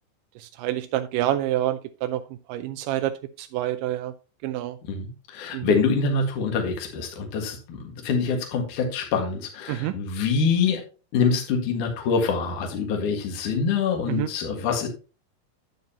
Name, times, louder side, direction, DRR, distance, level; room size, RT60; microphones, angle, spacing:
voice 1, 0.4-2.2 2.5-3.1 3.4-4.1 4.4-4.8 5.5-5.7 9.7-9.9 14.2-14.3, right 13 dB, 80° right, 9 dB, 2.0 m, -27 dB
voice 2, 4.9-10.8 11.1-14.9, left 5 dB, 60° left, 3 dB, 3.0 m, -25 dB
9.4 x 9.2 x 2.9 m, 0.33 s
omnidirectional pair, 4.2 m